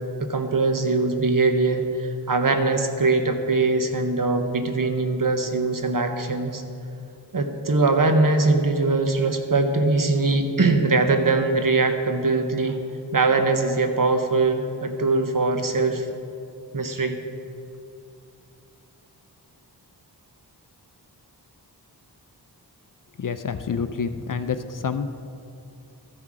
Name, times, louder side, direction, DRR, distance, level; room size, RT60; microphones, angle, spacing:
voice 1, 0.2-6.6 7.3-12.8 13.1-16.1 16.7-17.2, right 3 dB, 50° right, 6 dB, 0.9 m, -22 dB
voice 2, 23.2-25.1, left 6 dB, 50° left, 10 dB, 0.5 m, -28 dB
13.0 x 5.7 x 4.8 m, 2.6 s
wide cardioid pair, 45°, 43 cm